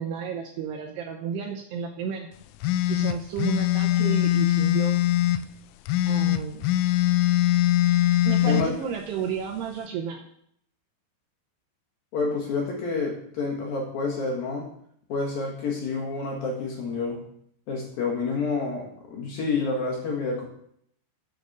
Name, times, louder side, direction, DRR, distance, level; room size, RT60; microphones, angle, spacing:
voice 1, 0.0-2.3 2.9-5.0 6.0-6.7 8.2-10.2, right 7 dB, 75° right, 1 dB, 2.5 m, -32 dB
sound 1, 2.6-5.4 5.9-8.7, left 15 dB, 85° left, 3.1 m, -22 dB
voice 2, 12.1-14.7 15.1-17.2 17.7-20.5, left 4 dB, 60° left, -1 dB, 2.8 m, -28 dB
8.5 x 6.9 x 6.7 m, 0.68 s
omnidirectional pair, 5.7 m